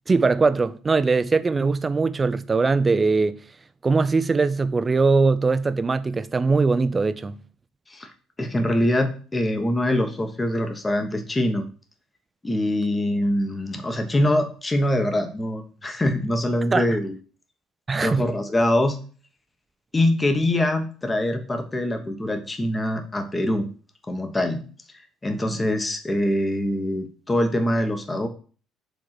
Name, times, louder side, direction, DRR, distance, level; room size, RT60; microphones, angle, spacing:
voice 1, 0.1-3.4 3.8-7.4 16.7-17.0 17.9-18.2, right 4 dB, 25° right, 0.5 m, -21 dB
voice 2, 8.4-11.6 12.4-17.1 17.9-19.0 19.9-23.7 24.1-24.6 25.2-28.3, left 1 dB, 20° left, 1.0 m, -24 dB
5.1 x 3.7 x 5.8 m
cardioid pair, 90°, 0 cm